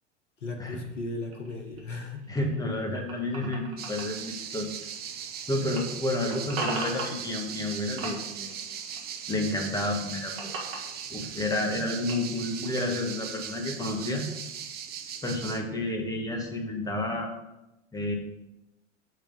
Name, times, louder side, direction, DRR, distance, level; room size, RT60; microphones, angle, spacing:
voice 1, 0.4-2.3 12.3-12.5, left 3 dB, 75° left, 4 dB, 1.1 m, -36 dB
sound 1, 0.6-5.4 5.6-7.7 8.0-9.4 9.8-12.4, right 3 dB, 55° right, 1.7 m, -40 dB
voice 2, 2.3-4.7 5.5-8.5 9.3-10.5 11.1-14.3 15.2-17.3 17.9-18.1, left 1 dB, 10° left, 2 dB, 1.2 m, -30 dB
sound 2, 3.8-15.6, right 8 dB, 25° right, 0.7 m, -39 dB
7.5 x 3.4 x 5.2 m, 0.93 s
figure-of-eight pair, 85°, 37 cm